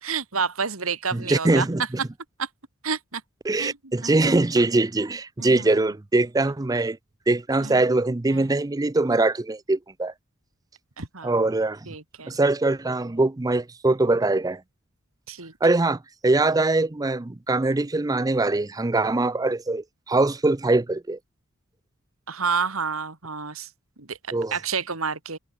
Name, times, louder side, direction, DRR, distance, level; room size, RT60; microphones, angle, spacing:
voice 1, 0.0-1.7 2.4-2.5 2.8-3.2 3.6-3.8 4.0-4.4 5.4-5.9 7.6-7.8 8.3-8.4 11.0-11.5 11.8-12.3 15.3-15.5 22.3-23.7 24.0-25.4, right 5 dB, 85° right, 3.0 m, -30 dB
voice 2, 1.1-1.8 3.4-7.0 7.3-10.1 11.2-11.8 12.3-14.6 15.6-21.2 24.3-24.5, right 2 dB, 15° right, 0.5 m, -22 dB
head